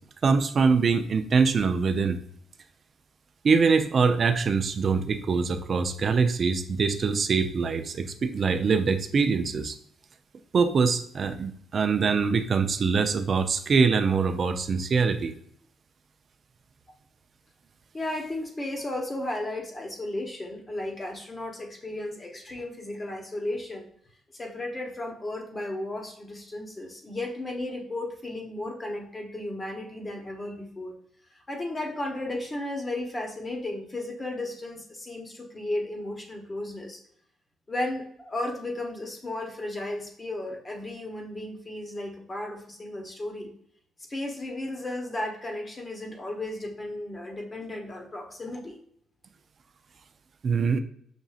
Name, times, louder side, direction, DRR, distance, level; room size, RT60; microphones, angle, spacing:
voice 1, 0.2-2.2 3.4-9.8 10.5-15.3 50.4-50.8, right 5 dB, 45° right, 8 dB, 0.4 m, -23 dB
voice 2, 17.9-23.9 24.3-30.9 31.3-37.0 37.7-43.5 44.1-48.8, left 1 dB, 25° left, 2 dB, 1.0 m, -34 dB
6.0 x 2.6 x 2.4 m, 0.66 s
cardioid pair, 90°, 0 cm